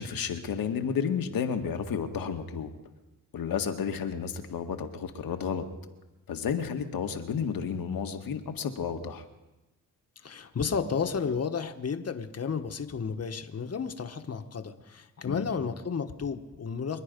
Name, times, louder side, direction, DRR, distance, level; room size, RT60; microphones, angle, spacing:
voice 1, 0.0-2.8 3.3-5.6 6.3-9.2 15.2-15.5, left 7 dB, 75° left, 6 dB, 1.6 m, -32 dB
voice 2, 10.2-17.0, left 6 dB, 45° left, 7 dB, 1.4 m, -32 dB
26.5 x 9.7 x 5.3 m, 1.1 s
cardioid pair, 60°, 35 cm